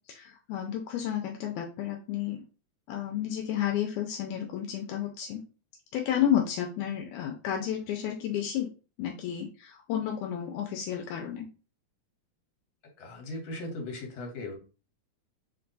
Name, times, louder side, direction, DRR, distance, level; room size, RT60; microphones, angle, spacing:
voice 1, 0.1-2.4 2.9-5.4 5.9-8.7 9.0-11.5, left 10 dB, 85° left, 2 dB, 1.9 m, -31 dB
voice 2, 13.0-14.5, left 2 dB, 65° left, 2 dB, 2.1 m, -38 dB
4.5 x 2.2 x 3.8 m, 0.35 s
omnidirectional pair, 3.3 m